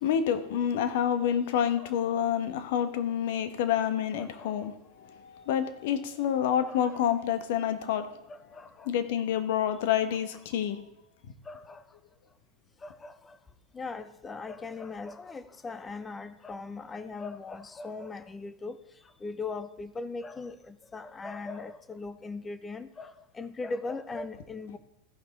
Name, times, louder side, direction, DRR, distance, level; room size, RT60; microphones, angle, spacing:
voice 1, 0.0-8.1 8.8-10.8, left 9 dB, 65° left, 9 dB, 1.1 m, -28 dB
voice 2, 4.2-4.5 6.7-7.0 8.3-8.9 11.4-11.9 12.8-13.4 13.7-24.8, left 3 dB, 20° left, 13 dB, 0.7 m, -39 dB
15.5 x 5.7 x 4.1 m, 0.81 s
hypercardioid pair, 90°, 0 cm